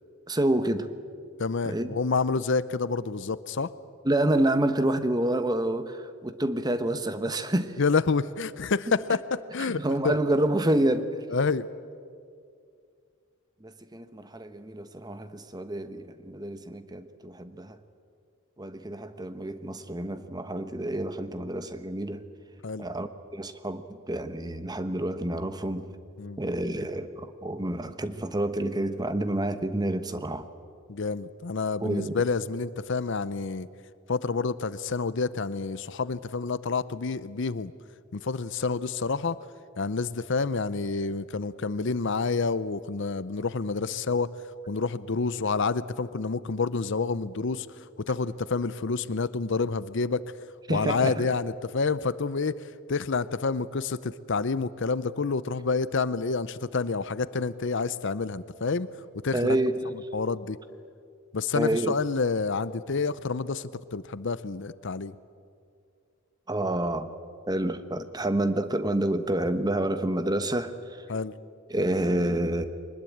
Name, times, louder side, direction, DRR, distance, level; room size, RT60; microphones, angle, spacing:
voice 1, 0.3-0.9 1.6-2.0 4.0-7.8 9.6-11.2 13.6-17.8 18.6-22.2 22.8-25.9 26.4-30.5 31.8-32.2 50.7-51.3 59.3-59.9 61.5-61.9 66.5-67.1 67.5-71.0 71.7-72.7, right 1 dB, 20° right, 10 dB, 1.0 m, -28 dB
voice 2, 1.4-3.7 7.8-10.1 11.3-11.7 22.6-22.9 26.2-26.4 30.9-33.7 34.1-37.7 38.1-39.4 39.8-44.3 44.7-47.7 48.1-50.2 50.7-58.9 59.2-59.4 60.1-60.6 61.3-65.1 71.1-71.3, left 4 dB, 60° left, 16 dB, 0.7 m, -28 dB
23.0 x 20.0 x 8.7 m, 2.3 s
head